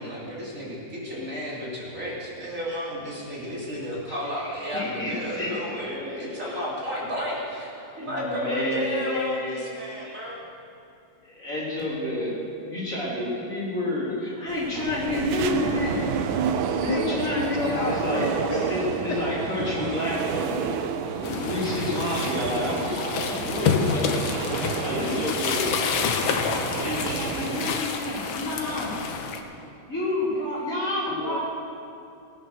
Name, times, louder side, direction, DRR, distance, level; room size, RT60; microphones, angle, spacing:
voice 1, 0.0-10.4, equal, 40° right, -7 dB, 3.8 m, -32 dB
voice 2, 4.1-6.5 8.0-10.2 11.2-16.1 16.8-18.3 18.7-20.7 21.1-24.2 24.8-25.6 26.7-29.0 29.9-31.4, left 1 dB, 40° left, -6 dB, 3.8 m, -30 dB
sound 1, 14.5-27.8, right 7 dB, 85° right, 1.6 m, -30 dB
voice 3, 16.9-18.7 19.1-19.2 30.3-30.4 31.1-31.4, left 5 dB, 65° left, 0 dB, 1.6 m, -31 dB
sound 2, 21.2-29.4, left 6 dB, 85° left, 1.8 m, -28 dB
19.0 x 9.1 x 6.4 m, 2.6 s
omnidirectional pair, 2.1 m